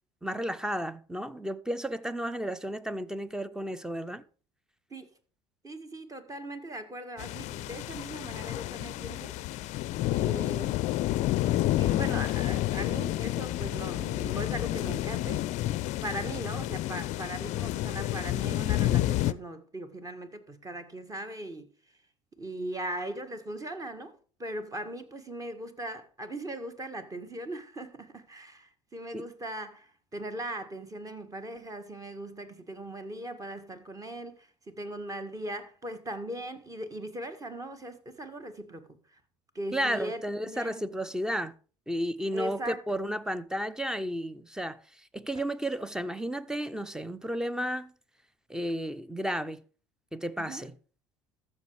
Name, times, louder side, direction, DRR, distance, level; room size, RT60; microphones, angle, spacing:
voice 1, 0.2-4.2 29.1-29.3 39.7-41.5 41.9-47.9 48.5-49.6 50.1-50.7, equal, 5° right, 0.7 m, -33 dB
voice 2, 5.6-9.6 10.1-10.9 11.8-15.4 16.0-21.7 22.4-24.1 24.4-39.2 39.6-40.8 42.3-42.8 50.4-50.7, right 1 dB, 20° right, 1.8 m, -39 dB
sound 1, 7.2-19.3, left 15 dB, 50° left, 0.5 m, -30 dB
13.5 x 6.4 x 4.8 m
hypercardioid pair, 70°, 15 cm